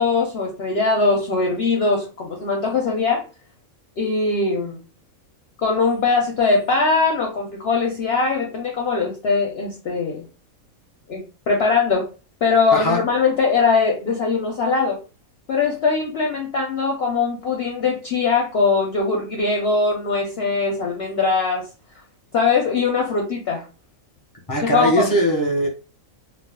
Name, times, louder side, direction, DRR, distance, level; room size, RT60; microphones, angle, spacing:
voice 1, 0.0-3.2 4.0-4.8 5.6-10.2 11.1-12.1 12.4-15.0 15.5-21.7 22.3-23.7 24.6-25.1, left 4 dB, 60° left, 0 dB, 0.7 m, -21 dB
voice 2, 24.5-25.7, equal, 20° left, 0 dB, 0.7 m, -20 dB
2.3 x 2.3 x 3.5 m, 0.33 s
omnidirectional pair, 1.5 m